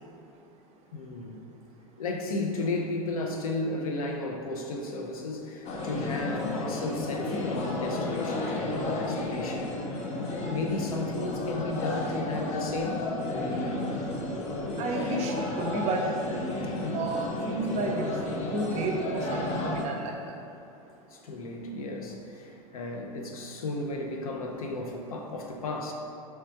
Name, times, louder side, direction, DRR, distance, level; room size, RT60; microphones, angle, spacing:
voice 1, 0.9-1.4 2.0-9.7 10.5-13.1 16.8-17.0 21.1-25.9, left 2 dB, 75° left, 2 dB, 0.6 m, -34 dB
sound 1, 5.6-19.8, left 2 dB, 40° left, 0.7 m, -32 dB
voice 2, 14.2-16.1 16.9-18.2 18.5-20.3, right 3 dB, 40° right, 2 dB, 0.6 m, -32 dB
3.3 x 3.3 x 4.5 m, 2.7 s
hypercardioid pair, 90°, 18 cm